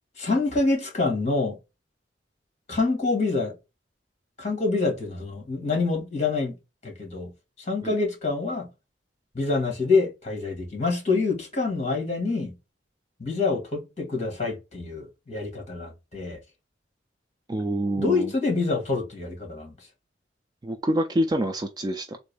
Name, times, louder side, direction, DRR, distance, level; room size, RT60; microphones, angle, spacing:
voice 1, 0.2-1.6 2.7-3.5 4.4-6.5 6.8-7.3 7.7-8.7 9.3-12.5 13.2-16.4 18.0-19.7, left 3 dB, 40° left, 1.6 m, -26 dB
voice 2, 17.5-18.3 20.6-22.2, right 1 dB, 20° right, 0.3 m, -26 dB
3.8 x 2.6 x 3.3 m
head